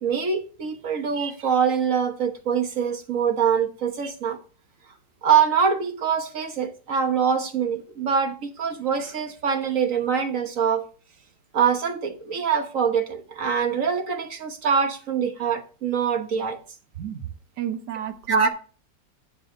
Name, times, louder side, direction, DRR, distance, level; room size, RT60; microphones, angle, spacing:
voice 1, 0.0-4.4 5.2-10.8 11.5-16.6 17.0-17.2 18.3-18.5, right 7 dB, 50° right, 1.4 m, -24 dB
voice 2, 17.6-18.5, right 11 dB, 65° right, 1.6 m, -31 dB
9.3 x 7.0 x 3.8 m
omnidirectional pair, 2.0 m